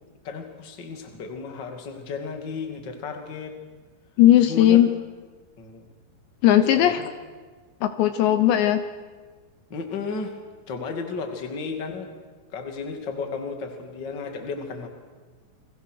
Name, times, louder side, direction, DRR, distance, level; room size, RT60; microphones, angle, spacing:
voice 1, 0.2-3.6 4.4-4.8 5.6-5.9 6.7-7.1 9.7-10.3 10.7-12.1 12.5-14.9, left 4 dB, 30° left, 5 dB, 2.2 m, -33 dB
voice 2, 4.2-4.9 6.4-7.0 7.8-8.8, left 12 dB, 75° left, 10 dB, 3.0 m, -17 dB
30.0 x 23.0 x 6.5 m, 1.4 s
omnidirectional pair, 5.5 m